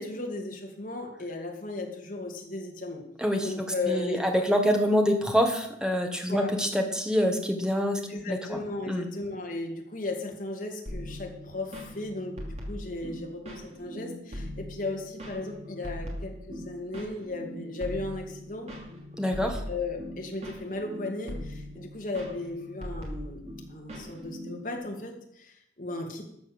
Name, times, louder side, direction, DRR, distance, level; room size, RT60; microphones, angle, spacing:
voice 1, 0.0-3.0 3.4-4.2 6.3-6.5 8.1-18.7 19.7-23.4 23.7-26.2, left 2 dB, 45° left, 1 dB, 2.4 m, -36 dB
voice 2, 3.2-8.0 8.3-8.6 8.9-9.1 19.2-19.6, equal, 5° right, 3 dB, 1.5 m, -26 dB
sound 1, 10.9-24.8, equal, 35° right, 2.9 m, -40 dB
13.0 x 7.2 x 7.2 m, 0.75 s
head